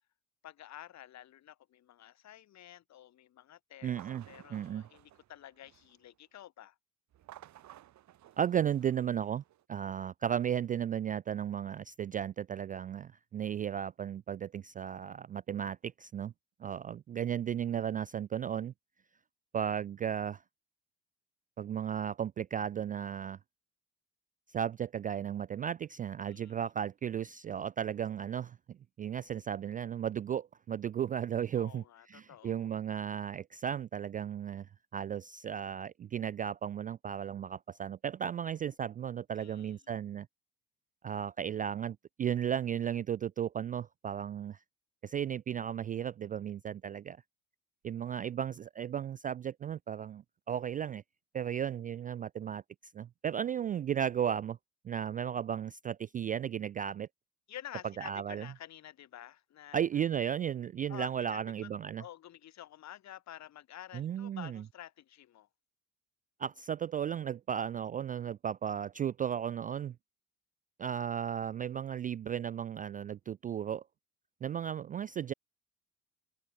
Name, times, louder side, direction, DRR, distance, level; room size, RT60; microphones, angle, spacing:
voice 1, 0.4-4.0 4.3-6.8 26.3-26.6 31.5-32.7 39.3-39.8 57.5-59.8 60.9-61.7 62.0-65.5, left 12 dB, 45° left, 1.2 m, -50 dB
voice 2, 3.8-4.2 4.5-4.8 8.4-9.4 9.7-16.3 16.6-18.7 19.5-20.4 21.6-23.4 24.5-34.7 34.9-40.3 41.0-44.6 45.0-47.2 47.8-51.0 51.3-52.6 52.9-54.6 54.8-57.1 58.0-58.5 59.7-62.0 63.9-64.6 66.4-69.9 70.8-73.8 74.4-75.3, right 9 dB, 20° right, 0.3 m, -35 dB
sound 1, 3.8-6.1 7.1-9.6, right 13 dB, 45° right, 1.2 m, -56 dB
open air
figure-of-eight pair, 50°, 40 cm